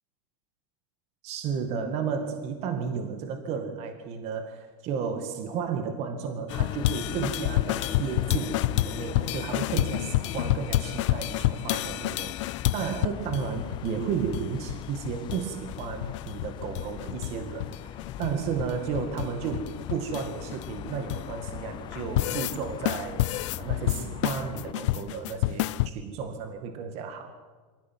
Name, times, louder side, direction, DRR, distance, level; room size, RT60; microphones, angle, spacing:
voice 1, 1.2-27.4, right 6 dB, 40° right, 6 dB, 2.2 m, -33 dB
sound 1, 6.5-13.5 13.7-13.8 14.1-14.8 15.0-15.4 15.7-17.3 17.6-21.5 21.9-22.6 22.9-25.9, left 15 dB, 60° left, 0.9 m, -29 dB
sound 2, 6.5-24.7, left 13 dB, 25° left, 0.6 m, -40 dB
25.0 x 17.0 x 9.3 m, 1.5 s
supercardioid pair, 145°, 17 cm